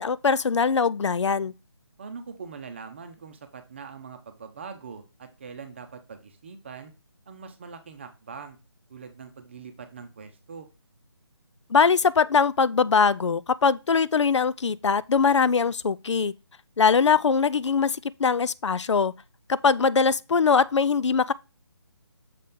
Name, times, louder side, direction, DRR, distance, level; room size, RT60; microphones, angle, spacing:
voice 1, 0.0-1.5 11.7-16.3 16.8-19.1 19.5-21.3, left 5 dB, 90° left, 0.4 m, -22 dB
voice 2, 2.0-6.9 7.3-8.6 8.9-10.7, right 5 dB, 25° right, 0.7 m, -42 dB
6.6 x 4.2 x 3.6 m
figure-of-eight pair, 165°, 15 cm